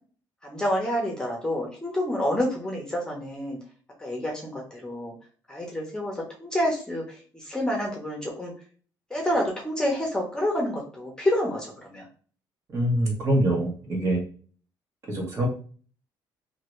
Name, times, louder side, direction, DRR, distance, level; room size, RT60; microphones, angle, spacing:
voice 1, 0.4-3.6 4.0-5.1 5.5-8.5 9.1-12.1, left 1 dB, 10° left, -1 dB, 0.8 m, -28 dB
voice 2, 12.7-14.2 15.1-15.5, right 1 dB, 35° right, -1 dB, 1.3 m, -24 dB
2.7 x 2.7 x 3.1 m, 0.41 s
cardioid pair, 130°, 8 cm